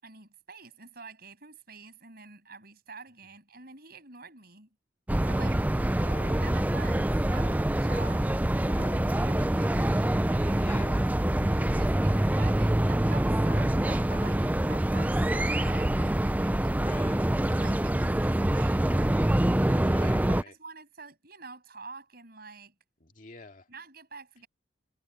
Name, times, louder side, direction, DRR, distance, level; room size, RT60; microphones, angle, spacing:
voice 1, 0.0-4.7 5.2-5.7 6.4-8.3 9.2-10.9 11.7-16.9 17.3-19.5 20.0-22.7 23.7-24.5, right 4 dB, 55° right, 7.2 m, -47 dB
sound 1, 5.1-20.4, right 1 dB, 10° right, 0.5 m, -25 dB
voice 2, 5.9-6.7 8.6-9.2 10.6-11.0 16.6-17.3 19.8-20.6 23.0-23.7, left 3 dB, 50° left, 2.4 m, -47 dB
head